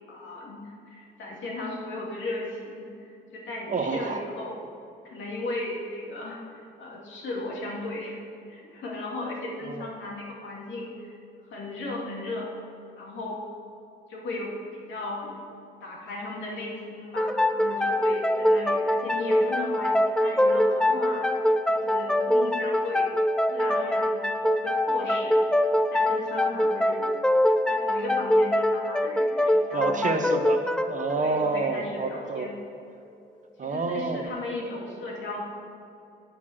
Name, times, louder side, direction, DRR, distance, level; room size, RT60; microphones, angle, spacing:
voice 1, 0.1-4.5 5.0-8.2 8.5-11.1 11.5-12.5 13.0-13.4 14.1-15.4 15.8-23.1 23.5-25.4 25.9-27.1 27.7-30.0 31.2-32.5 33.6-35.4, left 2 dB, 70° left, -2 dB, 2.4 m, -36 dB
voice 2, 3.7-4.2 9.7-9.9 29.7-32.5 33.6-34.3, right 4 dB, 40° right, 6 dB, 0.9 m, -28 dB
sound 1, 17.2-32.5, left 1 dB, 5° left, 0.4 m, -24 dB
8.3 x 7.5 x 6.5 m, 2.5 s
cardioid pair, 90°, 20 cm